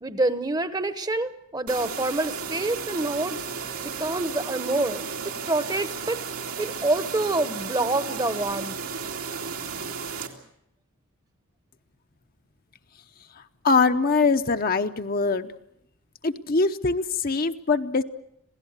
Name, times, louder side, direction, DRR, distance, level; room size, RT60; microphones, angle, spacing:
voice 1, 0.0-3.4 3.8-5.0 5.5-6.2 6.6-8.8, right 2 dB, 20° right, 12 dB, 1.0 m, -27 dB
sound 1, 1.7-10.3, right 6 dB, 85° right, 2.6 m, -34 dB
voice 2, 13.6-15.5 16.2-18.0, left 4 dB, 40° left, 7 dB, 0.8 m, -23 dB
27.0 x 17.5 x 8.1 m, 0.76 s
head